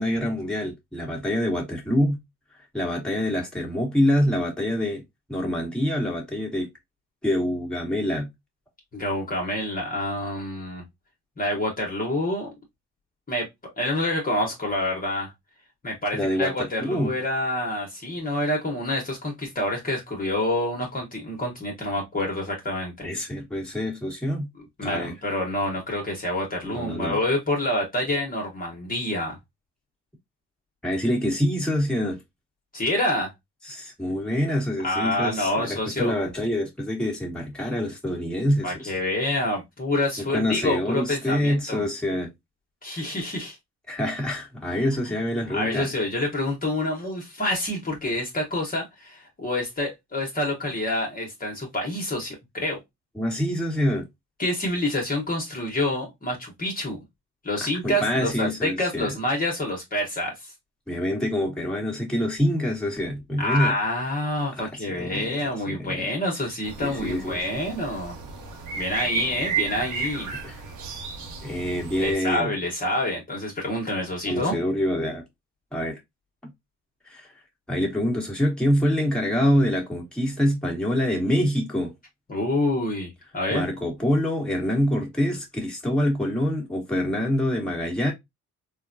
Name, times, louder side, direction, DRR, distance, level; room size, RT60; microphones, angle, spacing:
voice 1, 0.0-2.2 2.7-5.0 5.3-6.7 7.2-8.3 16.1-16.5 16.8-17.1 23.0-24.5 24.8-25.1 26.6-27.2 30.8-32.2 33.6-38.9 40.2-42.3 43.9-45.9 53.1-54.0 57.8-59.1 60.9-63.7 64.5-66.1 66.8-67.4 70.4-70.6 71.4-72.5 74.2-75.2 75.7-76.0 77.0-77.3 77.7-81.9 83.5-88.1, equal, 5° left, 1.3 m, -26 dB
voice 2, 8.9-10.8 11.4-12.5 13.3-15.3 15.8-23.1 24.6-29.4 32.7-33.3 34.8-36.1 38.6-41.9 42.8-43.6 45.1-45.2 45.5-52.8 54.4-57.0 57.4-60.5 63.4-68.2 68.8-70.3 72.0-74.5 82.3-83.6, left 1 dB, 30° left, 1.1 m, -27 dB
sound 1, 66.6-72.1, right 5 dB, 80° right, 1.0 m, -33 dB
3.7 x 2.2 x 2.6 m
cardioid pair, 90°, 30 cm